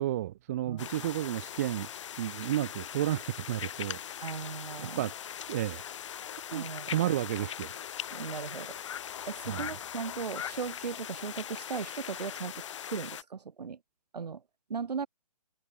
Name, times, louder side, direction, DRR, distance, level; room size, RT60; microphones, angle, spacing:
voice 1, 0.0-1.9 2.2-4.0 5.0-5.1 5.5-5.8 6.5-7.7 9.5-9.7, right 13 dB, 25° right, 0.4 m, -32 dB
sound 1, 0.8-13.2, left 10 dB, 50° left, 0.7 m, -40 dB
voice 2, 4.2-5.0 6.5-7.2 8.1-8.8 9.3-12.5 12.9-13.8 14.1-14.4 14.7-15.1, right 6 dB, 85° right, 1.8 m, -37 dB
open air
hypercardioid pair, 155°, 20 cm